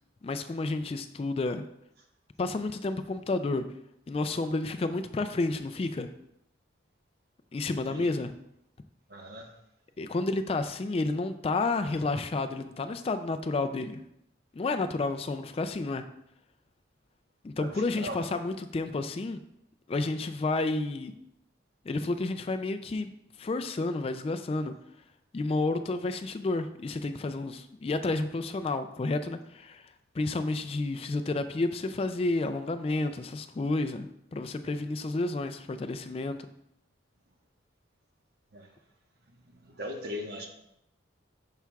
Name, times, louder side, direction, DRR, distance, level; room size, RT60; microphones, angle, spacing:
voice 1, 0.2-1.6 2.4-3.6 4.1-6.1 7.5-8.3 10.0-14.0 14.5-16.0 17.4-19.4 19.9-21.1 21.8-23.1 23.4-24.7 25.3-36.4, left 2 dB, 30° left, 8 dB, 0.3 m, -30 dB
voice 2, 9.1-9.5 17.6-17.7 18.0-18.2 38.5-38.7 39.6-40.5, left 1 dB, 55° right, 2 dB, 1.1 m, -38 dB
10.5 x 5.7 x 2.3 m, 0.80 s
head